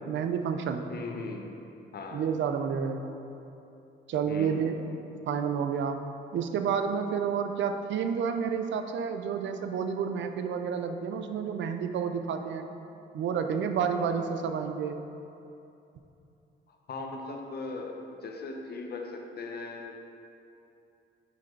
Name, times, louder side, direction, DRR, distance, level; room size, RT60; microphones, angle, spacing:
voice 1, 0.1-0.8 2.1-3.1 4.1-4.9 5.3-6.0 6.3-12.7 13.1-15.0, right 7 dB, 70° right, 7 dB, 0.5 m, -30 dB
voice 2, 0.9-1.5 1.9-2.2 4.3-4.7 16.7-20.0, left 3 dB, 55° left, 2 dB, 0.9 m, -39 dB
9.6 x 3.3 x 5.3 m, 2.8 s
cardioid pair, 90°, 20 cm